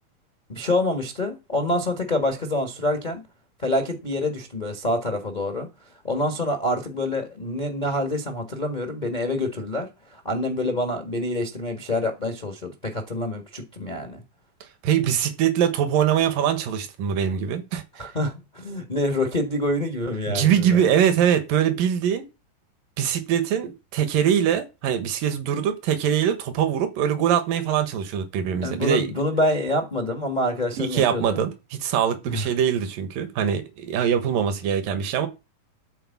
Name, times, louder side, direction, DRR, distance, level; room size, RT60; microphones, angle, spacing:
voice 1, 0.5-3.2 3.6-5.7 6.0-14.2 18.0-20.8 28.6-31.4 32.3-32.5, left 1 dB, 60° left, 0.4 m, -26 dB
voice 2, 14.8-17.8 20.3-22.2 23.0-29.1 30.8-35.3, right 9 dB, 80° right, 2.9 m, -23 dB
12.5 x 4.6 x 7.1 m
omnidirectional pair, 3.9 m